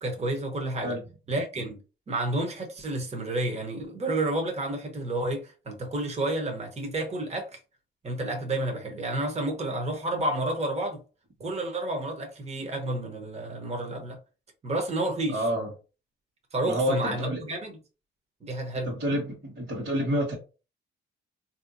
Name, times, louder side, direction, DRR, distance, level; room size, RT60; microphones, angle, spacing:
voice 1, 0.0-1.0 1.3-1.8 2.1-7.6 8.0-11.0 11.4-14.2 14.6-15.4 16.5-17.8 18.4-18.9, right 2 dB, 35° right, 1.0 m, -30 dB
voice 2, 15.3-15.7 16.7-17.4 18.9-20.4, equal, 60° right, 1.6 m, -28 dB
3.6 x 2.8 x 2.6 m
cardioid pair, 90°, 20 cm